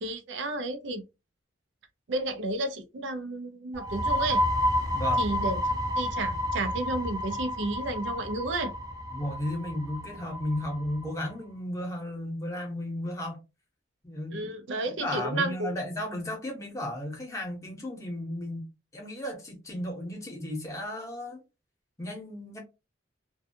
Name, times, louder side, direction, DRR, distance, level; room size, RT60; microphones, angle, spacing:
voice 1, 0.0-1.0 2.1-4.4 5.2-5.6 6.0-8.7 14.3-15.7, right 2 dB, 75° right, 0.5 m, -32 dB
sound 1, 3.7-11.2, left 1 dB, 20° right, 0.5 m, -30 dB
voice 2, 4.9-5.3 9.1-13.4 14.0-14.5 14.9-21.4 22.0-22.6, left 1 dB, 15° left, 0.8 m, -34 dB
2.6 x 2.2 x 2.6 m
head